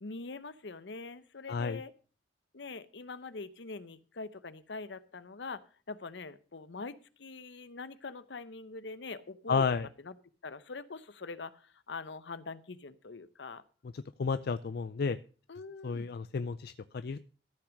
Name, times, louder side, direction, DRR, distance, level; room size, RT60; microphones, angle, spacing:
voice 1, 0.0-1.9 2.5-5.6 5.9-9.6 10.0-10.1 10.4-13.6 15.5-16.1, left 3 dB, 75° left, 14 dB, 0.8 m, -43 dB
voice 2, 1.5-1.8 9.5-9.9 13.9-15.2 15.8-17.2, left 5 dB, 60° left, 13 dB, 0.4 m, -32 dB
14.0 x 6.0 x 6.4 m, 0.39 s
head